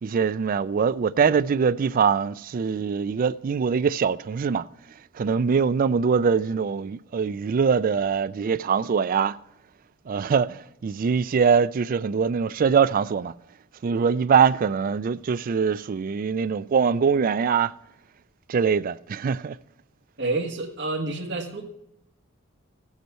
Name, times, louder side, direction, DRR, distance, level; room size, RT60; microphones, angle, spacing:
voice 1, 0.0-4.7 5.1-9.4 10.1-13.3 13.8-17.7 18.5-19.6, right 6 dB, 40° right, 0.3 m, -23 dB
voice 2, 20.2-21.7, right 2 dB, 55° right, 1.5 m, -29 dB
15.5 x 8.2 x 4.4 m
head